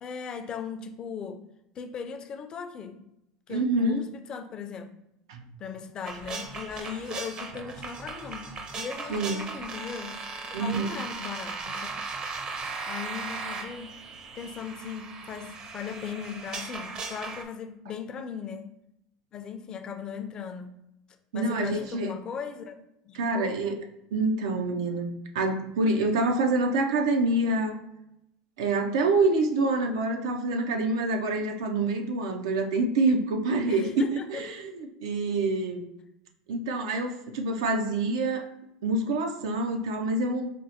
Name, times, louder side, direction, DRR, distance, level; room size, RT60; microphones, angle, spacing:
voice 1, 0.0-1.4 1.8-3.0 3.5-4.9 5.6-10.2 10.6-11.9 12.9-13.9 14.4-18.7 19.3-20.8 21.3-22.8 23.1-23.6 33.7-34.4, left 6 dB, 35° left, 6 dB, 0.4 m, -38 dB
voice 2, 3.5-4.0 5.3-5.4 9.1-9.4 10.5-11.0 21.3-22.1 23.2-23.8 24.1-27.8 28.6-35.8 36.5-38.5 38.8-40.5, right 2 dB, 90° right, 4 dB, 0.4 m, -26 dB
sound 1, 6.1-17.4, right 4 dB, 35° right, 0.5 m, -37 dB
4.9 x 2.1 x 2.7 m, 0.85 s
supercardioid pair, 120°, 2 cm